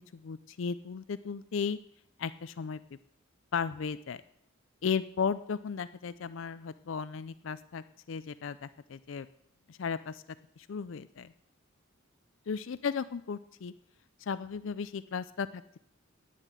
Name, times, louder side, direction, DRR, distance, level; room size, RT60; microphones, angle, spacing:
voice 1, 0.1-1.8 2.2-2.8 3.5-4.2 4.8-9.3 9.7-10.2 10.6-11.3 12.5-13.7 14.2-15.6, left 6 dB, 65° left, 15 dB, 0.4 m, -35 dB
10.5 x 10.0 x 7.5 m, 0.74 s
head